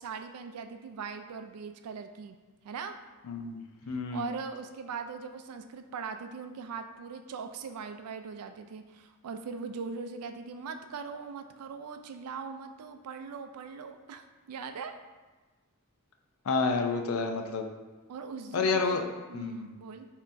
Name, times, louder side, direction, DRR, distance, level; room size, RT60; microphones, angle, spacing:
voice 1, 0.0-2.4 2.6-2.9 4.1-14.9 18.1-19.0 19.3-20.1, right 5 dB, 90° right, 8 dB, 0.4 m, -40 dB
voice 2, 3.3-4.3 16.4-17.7 18.5-19.1 19.3-19.7, left 4 dB, 70° left, 4 dB, 0.4 m, -29 dB
5.4 x 2.9 x 2.6 m, 1.3 s
head